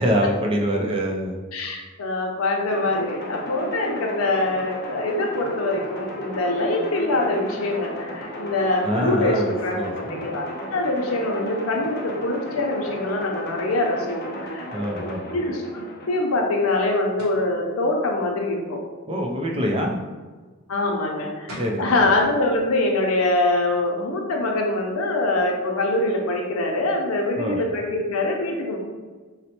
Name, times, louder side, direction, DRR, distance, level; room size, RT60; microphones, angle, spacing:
voice 1, 0.0-1.4 8.8-10.2 14.7-15.2 19.1-20.0 21.6-22.1 27.4-27.6, equal, 25° right, 0 dB, 0.4 m, -25 dB
voice 2, 1.5-14.7 14.9-18.8 20.7-28.8, left 2 dB, 90° left, 1 dB, 0.6 m, -24 dB
sound 1, 2.7-16.4, left 1 dB, 50° left, 0.6 m, -35 dB
sound 2, 17.2-17.5 21.1-21.2 21.5-21.8, equal, 70° right, 0.8 m, -38 dB
4.0 x 2.1 x 2.9 m, 1.3 s
head